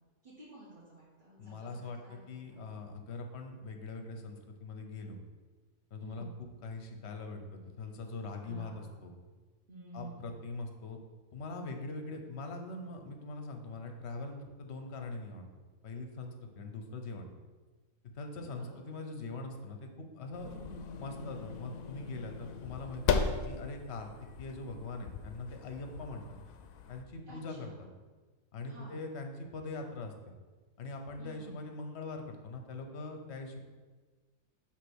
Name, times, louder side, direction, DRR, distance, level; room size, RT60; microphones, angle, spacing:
voice 1, 0.2-2.6 6.0-6.4 8.4-9.0 9.7-10.3 18.4-18.9 20.4-20.8 27.3-27.8 28.7-29.0 31.2-31.6, right 2 dB, 35° right, -9 dB, 2.1 m, -52 dB
voice 2, 1.4-5.2 5.9-7.4 7.8-9.1 9.9-11.0 11.3-15.4 15.8-17.2 18.1-20.5 21.0-24.1 24.4-26.2 26.9-27.7 28.5-30.1 30.8-33.6, left 3 dB, 50° left, 5 dB, 1.0 m, -42 dB
sound 1, 20.3-27.0, left 6 dB, 75° left, 1.0 m, -37 dB
8.0 x 3.3 x 6.3 m, 1.3 s
omnidirectional pair, 1.5 m